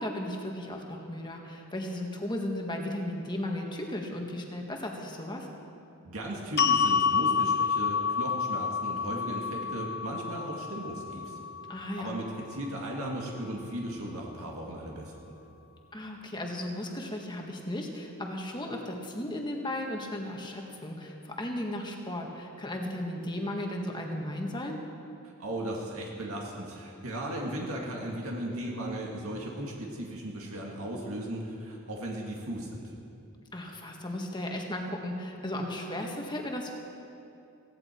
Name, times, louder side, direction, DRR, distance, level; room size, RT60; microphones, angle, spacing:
voice 1, 0.0-5.5 11.7-12.1 15.9-24.8 33.5-36.7, left 1 dB, 20° left, 1 dB, 1.6 m, -35 dB
voice 2, 6.0-11.4 12.0-15.3 25.4-32.9, right 1 dB, 70° right, -2 dB, 2.1 m, -36 dB
sound 1, 6.6-12.8, left 6 dB, 45° left, 0.6 m, -29 dB
17.0 x 17.0 x 4.5 m, 2.7 s
head